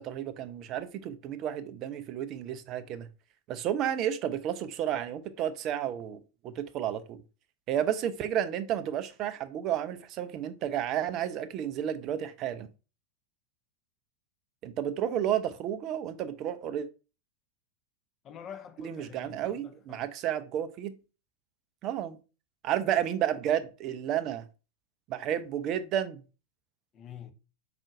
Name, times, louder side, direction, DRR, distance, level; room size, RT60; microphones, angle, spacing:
voice 1, 0.0-3.1 3.5-6.2 6.4-7.2 7.7-12.7 14.6-16.9 18.8-20.9 21.8-22.2 22.6-24.4 25.1-26.2, right 10 dB, 35° right, 0.4 m, -31 dB
voice 2, 18.2-20.1 26.9-27.3, left 8 dB, 30° left, 0.6 m, -46 dB
5.0 x 3.7 x 2.5 m
figure-of-eight pair, 90°, 0 cm